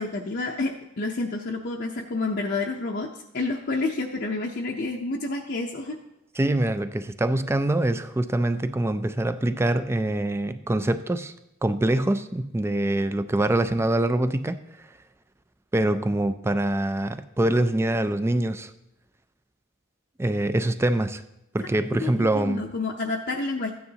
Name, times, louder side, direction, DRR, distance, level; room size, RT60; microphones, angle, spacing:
voice 1, 0.0-3.1 3.3-6.0 22.0-23.7, left 3 dB, 55° left, -1 dB, 0.7 m, -29 dB
voice 2, 6.4-11.3 11.6-14.6 15.7-18.7 20.2-21.2 21.5-22.7, right 1 dB, 10° right, 11 dB, 0.4 m, -24 dB
14.0 x 9.5 x 2.8 m, 0.87 s
head